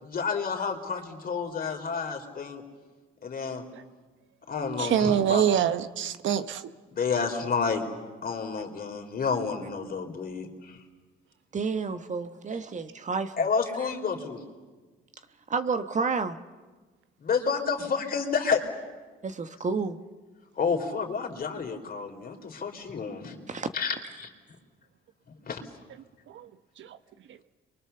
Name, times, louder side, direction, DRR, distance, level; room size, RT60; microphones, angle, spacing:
voice 1, 0.0-2.6 3.2-3.6 4.5-5.4 6.9-7.8 8.2-10.8 13.4-14.4 17.2-18.6 20.6-23.4 23.7-24.3 25.5-25.6, left 5 dB, 50° left, 3 dB, 3.7 m, -30 dB
voice 2, 4.8-6.6 26.3-26.5, right 9 dB, 75° right, 11 dB, 1.1 m, -24 dB
voice 3, 11.5-13.3 15.5-16.4 19.2-20.0 23.5-23.7, right 4 dB, 40° right, 9 dB, 1.3 m, -30 dB
29.5 x 23.5 x 7.0 m, 1.3 s
cardioid pair, 90°, 20 cm